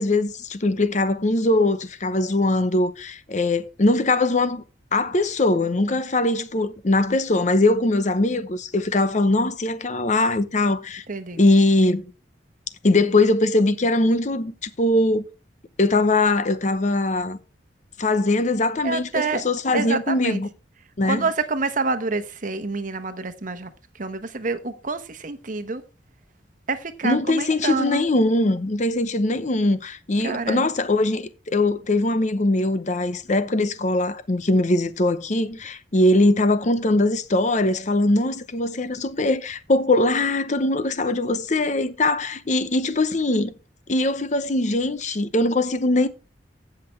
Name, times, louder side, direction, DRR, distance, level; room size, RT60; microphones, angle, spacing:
voice 1, 0.0-4.6 4.9-11.0 11.4-12.1 12.8-15.2 15.8-17.4 18.0-20.5 21.0-21.2 27.0-43.5 43.9-46.1, left 2 dB, 40° left, 0.8 m, -21 dB
voice 2, 11.1-11.4 18.8-19.4 19.7-20.4 21.0-23.7 23.9-25.8 26.7-28.1 30.2-30.6, right 4 dB, 45° right, 1.0 m, -27 dB
16.0 x 5.9 x 3.2 m
head